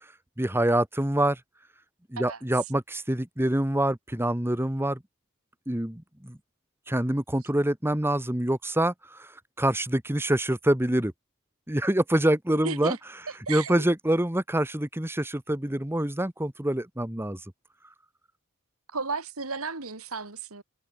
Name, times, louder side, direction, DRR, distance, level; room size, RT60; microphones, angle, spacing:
voice 1, 0.4-1.4 2.1-5.0 5.7-6.4 6.9-9.3 9.6-11.1 11.7-13.0 13.5-17.4, right 1 dB, 10° right, 1.3 m, -26 dB
voice 2, 12.6-13.0 13.5-13.8 18.9-20.6, right 4 dB, 70° right, 2.8 m, -33 dB
head